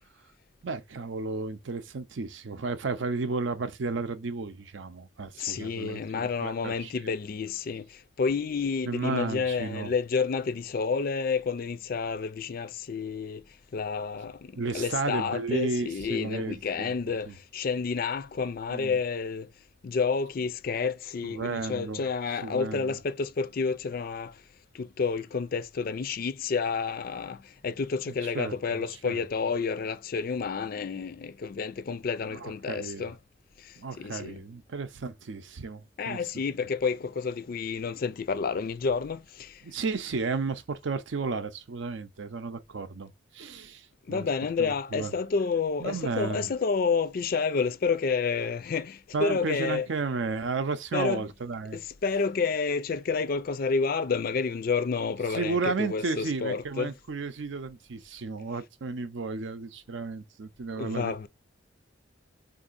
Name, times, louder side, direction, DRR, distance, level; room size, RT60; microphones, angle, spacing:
voice 1, 0.6-7.1 8.8-9.9 14.6-17.0 17.3-17.4 18.7-19.0 21.2-22.1 22.4-23.0 28.2-29.2 32.3-33.1 33.8-36.2 39.6-44.3 44.6-45.1 45.8-46.5 49.1-51.8 55.3-61.1, right 4 dB, 75° right, 0.6 m, -33 dB
voice 2, 5.4-13.4 13.7-19.5 19.8-24.4 24.7-33.2 33.6-34.4 36.0-39.6 44.1-49.9 50.9-51.2 51.7-56.9 60.8-61.3, left 5 dB, 50° left, 0.4 m, -30 dB
3.8 x 2.6 x 2.5 m
head